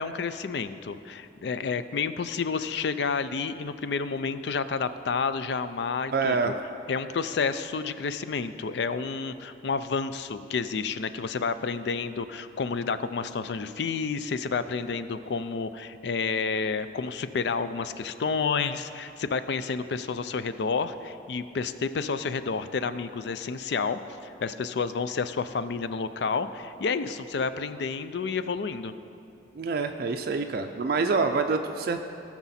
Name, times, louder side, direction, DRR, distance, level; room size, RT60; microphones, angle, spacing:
voice 1, 0.0-6.5 6.9-28.9, left 5 dB, 65° left, 12 dB, 0.4 m, -30 dB
voice 2, 6.1-6.6 29.5-32.0, right 4 dB, 55° right, 5 dB, 0.4 m, -26 dB
17.5 x 6.0 x 4.2 m, 2.7 s
head